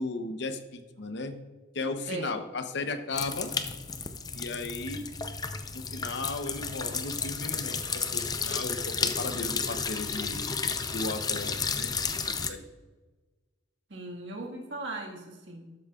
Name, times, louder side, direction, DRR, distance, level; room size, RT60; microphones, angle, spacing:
voice 1, 0.0-1.4 1.7-3.5 4.3-5.1 5.7-10.6 10.9-11.9 12.3-12.7, left 3 dB, 65° left, 9 dB, 0.8 m, -35 dB
sound 1, 3.1-12.5, left 5 dB, 20° left, 0.5 m, -32 dB
voice 2, 13.9-15.7, right 2 dB, 70° right, 0 dB, 1.7 m, -38 dB
12.5 x 8.7 x 2.4 m, 1.3 s
head